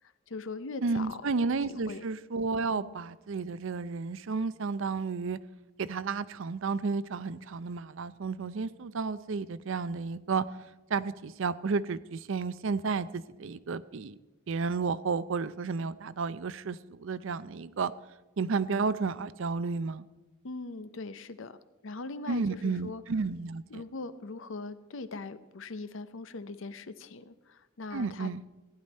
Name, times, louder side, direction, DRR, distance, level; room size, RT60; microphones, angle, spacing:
voice 1, 0.3-1.3 1.7-2.0 2.8-3.0 20.4-21.6 21.8-23.0 23.7-28.3, left 3 dB, 70° left, 13 dB, 0.7 m, -41 dB
voice 2, 0.8-5.4 5.8-10.4 10.9-14.1 14.5-17.9 18.4-20.1 22.3-23.8 27.9-28.4, right 4 dB, 70° right, 16 dB, 0.5 m, -32 dB
15.5 x 10.5 x 4.3 m, 1.1 s
head